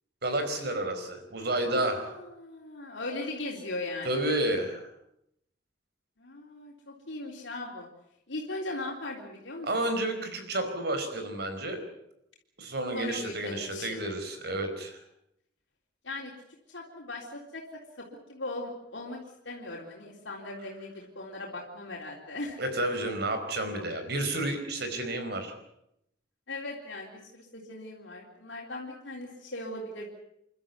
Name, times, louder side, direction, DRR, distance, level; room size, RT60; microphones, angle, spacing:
voice 1, 0.2-2.2 4.0-4.8 9.6-11.8 12.6-15.0 22.6-25.5, right 1 dB, 60° right, 7 dB, 4.7 m, -31 dB
voice 2, 1.7-4.3 6.2-7.9 8.3-9.7 13.0-14.0 16.0-16.3 16.7-17.6 18.3-19.2 19.5-22.6 26.5-30.1, left 2 dB, 80° left, -2 dB, 3.7 m, -38 dB
29.5 x 12.0 x 9.6 m, 0.81 s
head